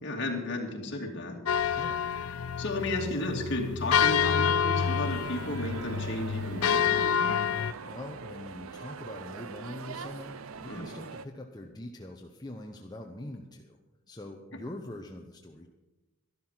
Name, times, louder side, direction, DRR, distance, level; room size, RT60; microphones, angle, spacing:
voice 1, 0.0-1.8 2.6-7.4 10.7-10.9, left 1 dB, 50° left, 1 dB, 2.5 m, -34 dB
sound 1, 1.5-7.7, left 7 dB, 75° left, 0.5 m, -28 dB
voice 2, 1.7-2.1 7.8-13.8 14.1-15.7, left 1 dB, 20° left, 2 dB, 0.7 m, -43 dB
sound 2, 4.8-11.3, right 5 dB, 70° right, 0.6 m, -43 dB
12.5 x 12.0 x 5.8 m, 1.0 s
head